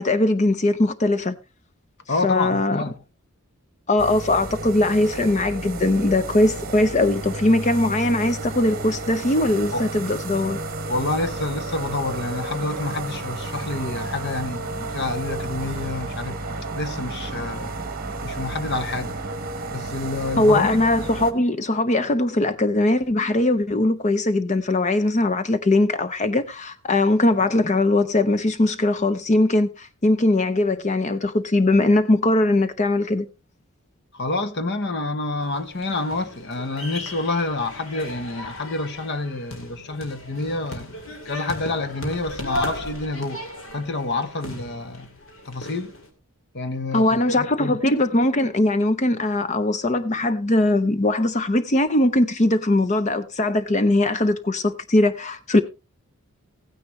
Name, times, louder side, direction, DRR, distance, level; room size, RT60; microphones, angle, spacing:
voice 1, 0.0-1.4 2.2-2.8 3.9-10.6 20.4-33.3 46.9-55.6, left 2 dB, 30° left, 0.6 m, -20 dB
voice 2, 2.1-2.9 9.7-9.8 10.9-16.4 16.8-17.7 18.2-19.2 19.7-20.8 34.1-40.9 41.2-43.4 43.7-45.1 45.4-45.9 46.5-47.8, left 2 dB, 50° left, 1.0 m, -28 dB
Street sweeper - cut, 4.0-21.3, right 2 dB, 40° right, 1.3 m, -32 dB
sound 1, 35.4-46.1, left 1 dB, 65° left, 2.4 m, -36 dB
15.5 x 9.7 x 3.0 m
head